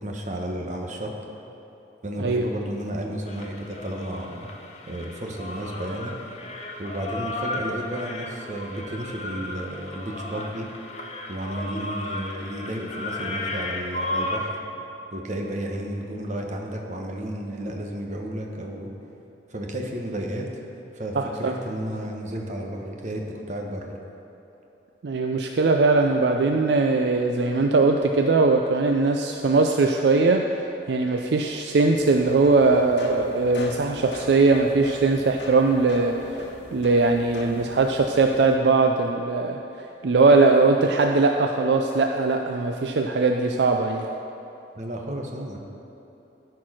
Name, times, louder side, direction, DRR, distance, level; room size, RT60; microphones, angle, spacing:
voice 1, 0.0-1.2 2.0-4.5 4.9-6.2 6.8-10.7 11.3-14.6 15.1-18.9 19.5-20.6 20.9-23.9 44.7-45.6, right 1 dB, 45° right, 1 dB, 1.1 m, -32 dB
sound 1, 3.3-14.4, left 2 dB, 40° left, 0.9 m, -34 dB
voice 2, 21.2-21.5 25.0-30.5 30.9-36.4 36.7-39.6 40.0-44.1, right 3 dB, 70° right, 3 dB, 0.4 m, -20 dB
sound 2, 31.9-38.5, left 2 dB, 80° left, 1.0 m, -40 dB
13.0 x 4.6 x 6.2 m, 3.0 s
head